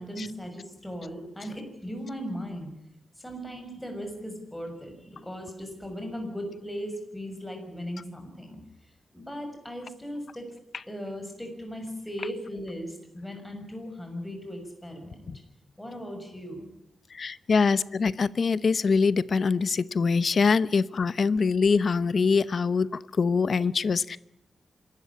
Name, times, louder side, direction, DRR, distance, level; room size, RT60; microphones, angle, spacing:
voice 1, 0.0-2.7 3.2-8.6 9.1-10.5 10.9-15.4 15.8-16.7, equal, 5° left, 4 dB, 6.5 m, -38 dB
voice 2, 17.1-22.9 23.2-24.2, left 5 dB, 55° left, 17 dB, 0.8 m, -24 dB
26.5 x 13.5 x 9.9 m, 0.78 s
wide cardioid pair, 120°, 0 cm